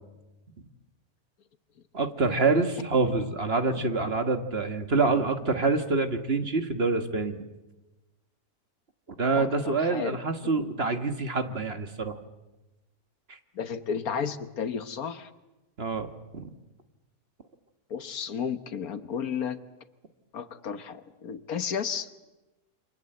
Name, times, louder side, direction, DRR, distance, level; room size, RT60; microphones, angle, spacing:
voice 1, 1.9-7.4 9.2-12.2 15.8-16.5, right 3 dB, 40° right, 8 dB, 1.7 m, -26 dB
voice 2, 9.4-10.1 13.5-15.3 17.9-19.6 20.3-22.1, left 7 dB, 70° left, 11 dB, 1.6 m, -33 dB
28.5 x 26.0 x 7.8 m, 1.1 s
omnidirectional pair, 1.6 m